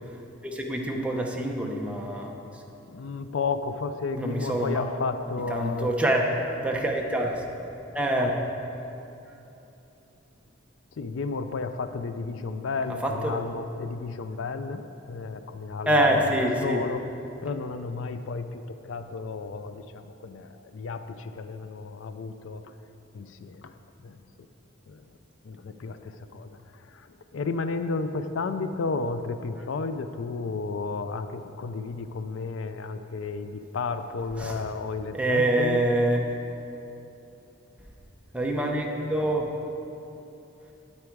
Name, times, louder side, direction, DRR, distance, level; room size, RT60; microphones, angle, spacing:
voice 1, 0.4-2.3 4.2-4.9 5.5-6.3 6.6-7.4 7.9-8.4 13.0-13.3 15.9-16.8 34.4-34.5 35.1-36.2 38.3-39.5, right 1 dB, 5° right, 0 dB, 0.8 m, -25 dB
voice 2, 2.9-5.9 10.9-17.0 17.4-22.7 23.1-24.2 24.9-25.2 25.4-35.8, left 4 dB, 75° left, 10 dB, 0.4 m, -33 dB
9.6 x 8.5 x 4.6 m, 3.0 s
head